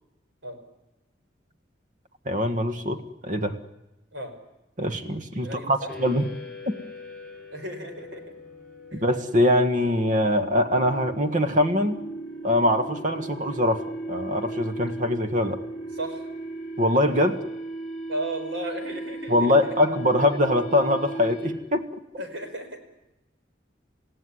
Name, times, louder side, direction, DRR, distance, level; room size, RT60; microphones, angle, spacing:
voice 1, 2.2-3.6 4.8-6.3 6.7-6.8 8.9-12.0 12.4-15.6 16.8-17.4 19.3-21.9, left 1 dB, 45° right, 7 dB, 1.6 m, -23 dB
voice 2, 5.4-5.9 7.5-8.2 8.9-9.0 15.9-16.2 18.1-19.5 22.2-22.8, right 1 dB, 75° right, 6 dB, 5.2 m, -34 dB
sound 1, 5.9-21.8, right 2 dB, ahead, 6.2 m, -37 dB
28.0 x 17.0 x 9.9 m, 0.98 s
head